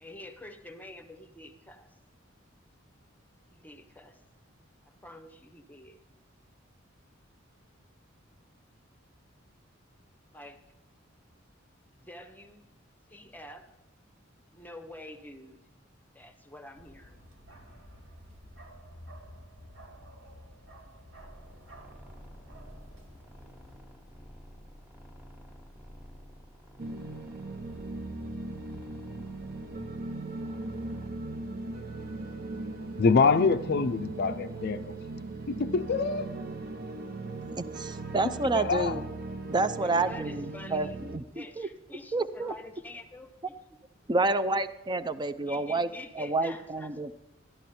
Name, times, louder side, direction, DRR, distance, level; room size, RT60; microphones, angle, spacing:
voice 1, 0.0-2.0 3.5-4.2 4.8-6.0 10.3-10.6 12.0-12.6 13.1-13.7 14.5-15.6 16.1-17.2 39.8-41.0 41.3-43.8 44.3-44.5 45.4-46.9, left 1 dB, 10° left, 6 dB, 0.8 m, -47 dB
Bark, 16.8-23.8, equal, 75° right, 2.4 m, -51 dB
sound 1, 21.2-31.1, equal, 5° right, 1.3 m, -52 dB
sound 2, 26.8-41.2, right 2 dB, 50° right, 1.0 m, -38 dB
voice 2, 33.0-34.9 35.5-36.3 38.2-39.0, left 4 dB, 50° left, 8 dB, 0.4 m, -26 dB
voice 3, 37.6-39.0 39.5-41.7 42.1-42.5 44.1-45.9 46.2-47.1, right 3 dB, 20° right, 13 dB, 0.5 m, -29 dB
12.5 x 12.0 x 4.3 m, 1.0 s
head